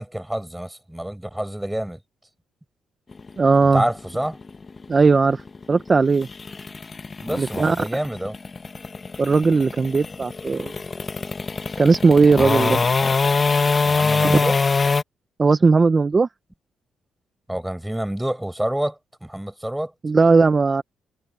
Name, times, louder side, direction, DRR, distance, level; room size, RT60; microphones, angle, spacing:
voice 1, 0.0-2.0 3.7-4.4 7.2-8.4 13.8-14.6 17.5-19.9, right 1 dB, 5° right, 6.5 m, -27 dB
sound 1, 3.1-15.0, left 4 dB, 30° left, 1.3 m, -24 dB
voice 2, 3.4-3.8 4.9-5.4 5.7-6.3 7.4-7.8 9.2-10.7 11.8-12.8 14.2-14.4 15.4-16.3 20.0-20.8, right 4 dB, 30° right, 0.9 m, -17 dB
cardioid pair, 90°, 0 cm